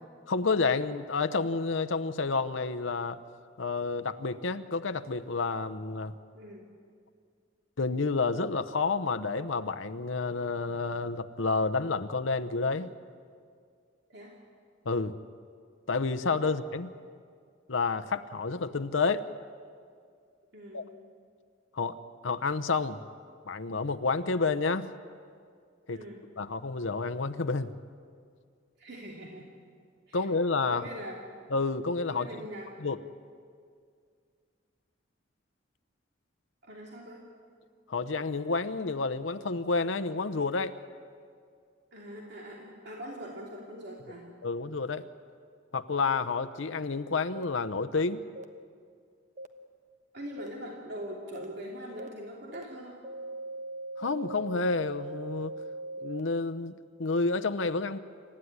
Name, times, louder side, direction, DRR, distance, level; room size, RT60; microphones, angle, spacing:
voice 1, 0.3-3.2 3.6-6.1 7.8-12.9 14.8-15.2 15.9-16.9 17.7-19.2 20.7-20.8 21.7-22.0 22.2-23.0 23.5-24.9 25.9-26.0 26.4-27.7 30.1-30.8 31.5-32.3 32.8-33.0 37.9-40.8 44.4-45.1 45.7-48.2 54.0-55.5 56.0-58.0, left 4 dB, 90° left, 9 dB, 0.8 m, -29 dB
voice 2, 6.3-6.7 14.1-14.4 16.4-16.5 20.5-20.9 25.9-26.3 28.8-29.5 30.1-30.3 30.7-31.2 32.1-32.8 36.6-37.3 41.9-44.3 50.1-53.0, equal, 60° right, -2 dB, 2.9 m, -42 dB
sound 1, 47.3-47.4 48.3-48.4 49.4-49.5 50.4-50.5 51.3-51.4 52.0-52.1 52.5-52.6 53.0-56.2, right 2 dB, 40° right, 1.0 m, -40 dB
27.5 x 14.5 x 9.7 m, 2.2 s
head